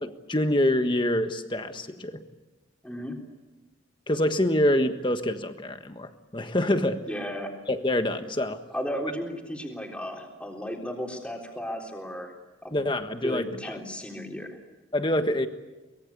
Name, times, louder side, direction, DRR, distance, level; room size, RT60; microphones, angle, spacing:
voice 1, 0.0-2.2 4.1-7.0 7.7-8.6 12.7-13.8 14.9-15.5, left 1 dB, 25° left, 8 dB, 1.4 m, -26 dB
voice 2, 2.8-3.2 7.1-7.6 8.7-12.3 12.6-12.8 13.2-14.6, equal, 5° left, 1 dB, 3.7 m, -34 dB
24.0 x 22.0 x 8.4 m, 1.1 s
head